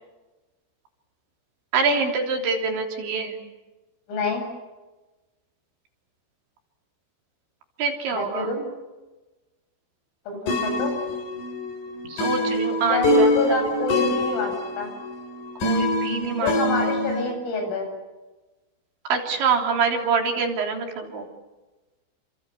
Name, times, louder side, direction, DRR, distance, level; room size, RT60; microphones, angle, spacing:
voice 1, 1.7-3.4 7.8-8.5 12.1-13.7 15.6-16.5 16.8-16.9 19.1-21.3, right 5 dB, 65° right, 2 dB, 5.6 m, -25 dB
voice 2, 4.1-4.5 8.1-8.7 10.3-11.0 12.9-14.9 16.3-17.9, left 3 dB, 85° left, 4 dB, 10.5 m, -27 dB
sound 1, 10.5-17.3, left 1 dB, 45° left, 4.5 m, -25 dB
29.5 x 26.5 x 7.1 m, 1.1 s
omnidirectional pair, 5.7 m